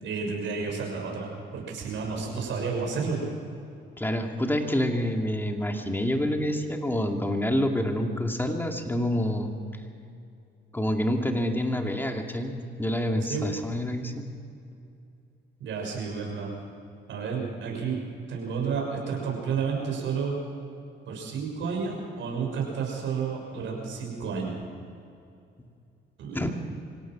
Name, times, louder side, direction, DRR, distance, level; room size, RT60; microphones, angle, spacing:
voice 1, 0.0-3.3 13.3-13.5 15.6-16.5 17.1-18.0 18.3-20.4 21.1-24.6 26.2-26.4, right 5 dB, 75° right, -1 dB, 6.6 m, -31 dB
voice 2, 4.0-9.5 10.7-14.3 26.3-26.7, left 1 dB, 10° left, 3 dB, 2.6 m, -27 dB
25.0 x 17.5 x 6.3 m, 2.5 s
cardioid pair, 90°, 20 cm